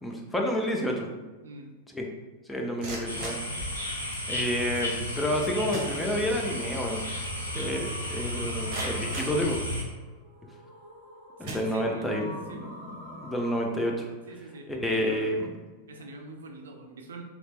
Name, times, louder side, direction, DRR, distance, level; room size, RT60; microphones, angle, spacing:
voice 1, 0.0-1.1 1.9-2.1 2.5-3.6 4.3-7.0 7.5-9.6 11.4-14.1 14.7-15.5, equal, 5° left, 0 dB, 0.5 m, -30 dB
voice 2, 1.4-1.7 11.4-12.7 14.3-15.3 15.9-17.2, right 2 dB, 65° right, 3 dB, 0.3 m, -43 dB
sound 1, 2.6-4.3 5.3-5.4 5.7-6.6 6.9-7.0 7.6-7.7 8.2-10.1 10.8-11.0 11.4-12.3, right 2 dB, 40° right, 0.8 m, -41 dB
sound 2, 3.1-9.8, left 1 dB, 85° left, 0.6 m, -33 dB
sound 3, 6.4-13.9, equal, 65° left, 1.0 m, -47 dB
3.2 x 2.9 x 2.4 m, 1.2 s
figure-of-eight pair, 90°, 0 cm